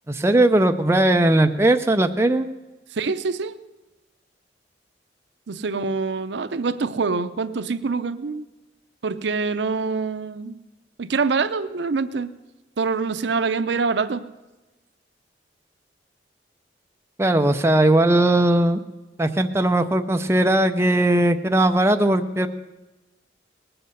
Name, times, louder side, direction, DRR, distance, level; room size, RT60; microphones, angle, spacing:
voice 1, 0.1-2.5 17.2-18.8 19.2-22.5, right 1 dB, 15° right, 6 dB, 0.5 m, -18 dB
voice 2, 2.9-3.6 5.5-8.5 9.0-10.6 11.0-12.3 12.8-14.2, right 4 dB, 75° right, 12 dB, 0.6 m, -25 dB
19.0 x 7.9 x 6.6 m, 1.1 s
head